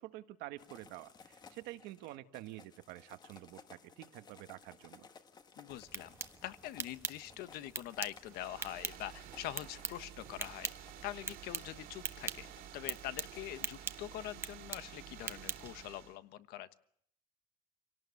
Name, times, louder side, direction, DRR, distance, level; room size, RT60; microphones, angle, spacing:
voice 1, 0.0-5.1, right 16 dB, 85° right, 11 dB, 1.4 m, -48 dB
sound 1, 0.6-14.4, left 5 dB, 25° left, 1.4 m, -60 dB
voice 2, 5.6-6.1 6.4-10.7 11.0-12.5 12.7-16.7, left 14 dB, 70° left, 13 dB, 1.2 m, -44 dB
sound 2, 5.7-15.9, right 4 dB, 15° right, 1.0 m, -44 dB
sound 3, 8.2-16.2, right 11 dB, 60° right, 2.5 m, -52 dB
27.0 x 18.0 x 8.3 m, 0.71 s
cardioid pair, 165°, 17 cm